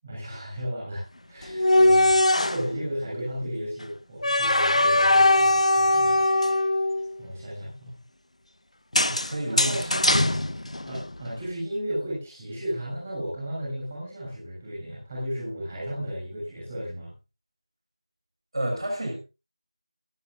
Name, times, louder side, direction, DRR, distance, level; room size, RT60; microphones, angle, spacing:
voice 1, 0.0-2.1 2.4-6.5 7.2-8.0 9.5-10.2 10.9-17.1, equal, 15° right, -6 dB, 7.4 m, -34 dB
sound 1, 1.4-2.7 4.2-7.1 8.9-11.2, left 1 dB, 80° left, 1.2 m, -21 dB
voice 2, 9.1-9.9 18.5-19.1, right 1 dB, 50° right, 2 dB, 6.5 m, -30 dB
23.0 x 14.0 x 2.7 m, 0.30 s
figure-of-eight pair, 175°, 3 cm